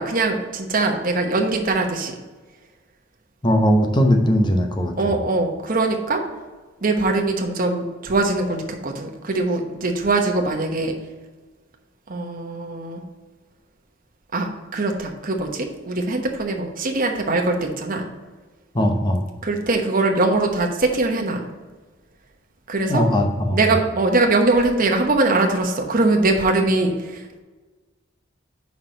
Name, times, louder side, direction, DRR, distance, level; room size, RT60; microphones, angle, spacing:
voice 1, 0.0-2.1 5.0-6.2 6.8-10.9 12.1-13.0 14.3-18.0 19.4-21.4 22.7-23.0 23.5-27.4, right 2 dB, 45° right, 3 dB, 1.1 m, -22 dB
voice 2, 3.4-4.9 18.7-19.2 22.9-23.6, equal, 25° left, 3 dB, 0.9 m, -19 dB
5.8 x 4.7 x 6.5 m, 1.3 s
head